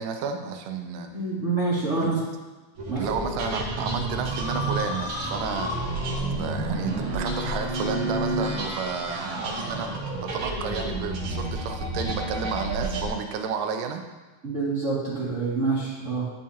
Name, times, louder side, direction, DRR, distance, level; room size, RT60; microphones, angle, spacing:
voice 1, 0.0-1.1 2.0-2.1 3.0-5.7 6.3-14.0, right 6 dB, 80° right, 6 dB, 2.2 m, -31 dB
voice 2, 1.1-2.2 2.9-3.1 14.4-16.3, right 3 dB, 25° right, -10 dB, 2.2 m, -27 dB
sound 1, 2.8-13.1, right 1 dB, 60° right, 1.4 m, -30 dB
11.0 x 6.5 x 2.8 m, 1.2 s
omnidirectional pair, 3.8 m